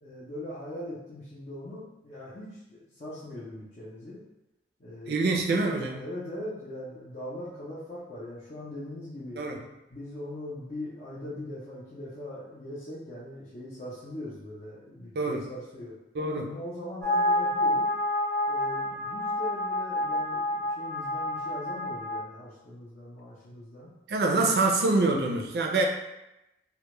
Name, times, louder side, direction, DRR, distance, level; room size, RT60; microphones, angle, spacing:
voice 1, 0.0-4.2 4.8-9.4 9.9-15.9 16.5-17.8 18.5-23.9, left 1 dB, 45° left, -10 dB, 0.5 m, -40 dB
voice 2, 5.1-6.0 9.4-9.6 15.2-15.4 16.1-16.5 24.1-25.8, right 3 dB, 60° right, 1 dB, 0.4 m, -25 dB
sound 1, 17.0-22.2, left 1 dB, ahead, 0.6 m, -28 dB
2.2 x 2.1 x 2.9 m, 0.93 s
head